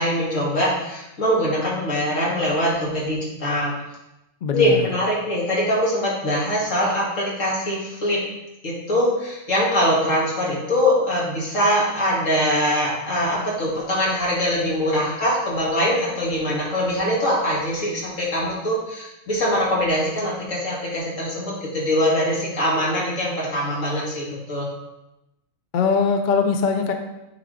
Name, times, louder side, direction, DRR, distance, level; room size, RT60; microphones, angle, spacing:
voice 1, 0.0-3.7 4.5-8.2 8.6-24.7, equal, 75° left, -5 dB, 2.6 m, -22 dB
voice 2, 4.4-4.9 25.7-26.9, left 5 dB, 50° left, 5 dB, 0.7 m, -21 dB
9.1 x 4.6 x 3.9 m, 0.92 s
omnidirectional pair, 1.4 m